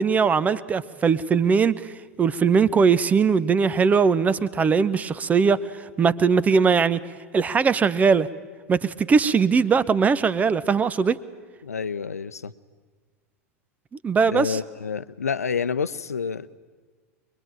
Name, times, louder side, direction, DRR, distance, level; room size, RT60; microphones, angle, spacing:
voice 1, 0.0-1.9 2.2-5.6 6.0-7.0 7.3-8.3 8.7-11.2 14.0-14.6, right 5 dB, 20° right, 17 dB, 0.8 m, -20 dB
voice 2, 11.6-12.5 14.3-16.6, left 6 dB, 80° left, 14 dB, 0.7 m, -28 dB
24.5 x 21.5 x 9.0 m, 1.5 s
figure-of-eight pair, 90°, 8 cm